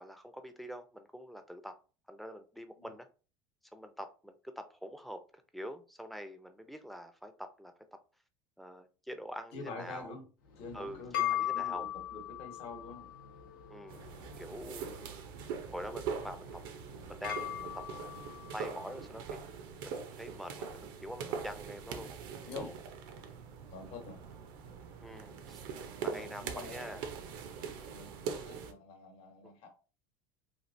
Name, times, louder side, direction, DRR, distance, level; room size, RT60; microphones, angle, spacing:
voice 1, 0.0-1.7 2.1-3.1 3.7-5.2 5.5-7.7 8.6-10.2 10.7-11.9 13.7-14.0 14.4-15.3 15.7-16.6 17.0-19.4 19.8-22.1 22.4-22.7 25.0-27.1 29.4-29.5, equal, ahead, 0.5 m, -46 dB
voice 2, 9.5-10.3 10.6-13.1 22.5-22.7 23.7-24.2 26.0-26.9 27.9-29.7, left 3 dB, 55° left, 1.0 m, -46 dB
sound 1, 10.5-19.0, left 12 dB, 85° left, 0.7 m, -40 dB
sound 2, 13.9-28.7, right 6 dB, 70° right, 0.5 m, -42 dB
3.2 x 2.4 x 2.6 m
hypercardioid pair, 85°, 12 cm